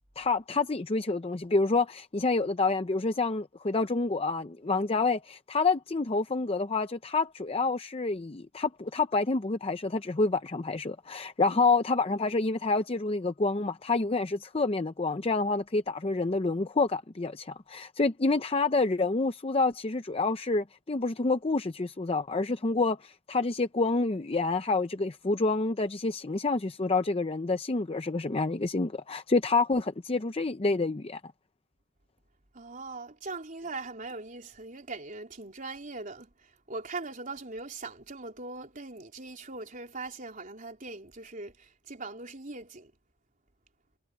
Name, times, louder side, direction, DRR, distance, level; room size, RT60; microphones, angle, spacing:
voice 1, 0.2-31.2, left 3 dB, 30° left, 0.6 m, -28 dB
voice 2, 32.5-42.9, right 3 dB, 40° right, 3.8 m, -41 dB
head